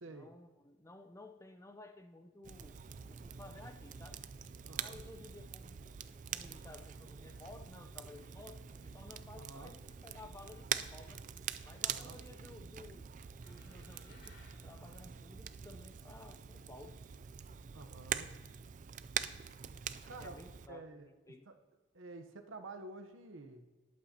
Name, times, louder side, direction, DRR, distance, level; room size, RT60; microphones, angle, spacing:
voice 1, 0.0-2.8 3.1-4.2 4.7-5.9 6.3-11.3 11.6-13.1 13.4-17.0 20.0-21.5, left 2 dB, 15° left, 7 dB, 0.5 m, -55 dB
Crackle, 2.4-20.7, right 8 dB, 40° right, 0.3 m, -44 dB
sound 1, 2.5-4.8 5.8-9.9, equal, 20° right, 4.0 m, -67 dB
voice 2, 4.6-5.0 9.4-9.7 11.8-12.2 17.7-18.3 20.1-20.4 20.7-21.1 21.5-21.6 21.9-23.6, right 2 dB, 90° right, 7 dB, 0.9 m, -49 dB
sound 2, 13.3-16.0, left 3 dB, 65° left, 3.5 m, -64 dB
19.5 x 8.5 x 2.8 m, 1.3 s
head